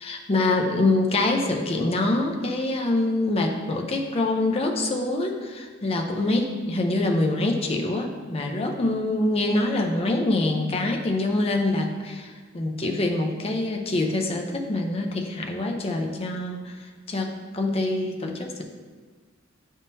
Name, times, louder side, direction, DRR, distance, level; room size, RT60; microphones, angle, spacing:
voice 1, 0.0-16.7 17.1-18.6, left 2 dB, 30° left, 3 dB, 0.5 m, -25 dB
9.5 x 3.6 x 2.7 m, 1.4 s
head